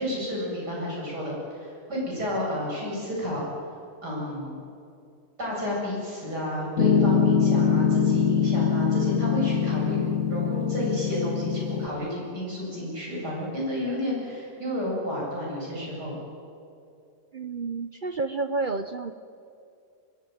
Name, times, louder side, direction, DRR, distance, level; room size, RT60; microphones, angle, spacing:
voice 1, 0.0-3.4 4.0-4.6 5.4-16.2, left 1 dB, 90° right, -4 dB, 8.7 m, -31 dB
Piano, 6.8-11.9, left 7 dB, 50° left, 1.6 m, -23 dB
voice 2, 17.3-19.1, right 3 dB, 55° right, 9 dB, 0.5 m, -30 dB
24.0 x 20.0 x 9.3 m, 2.5 s
omnidirectional pair, 1.7 m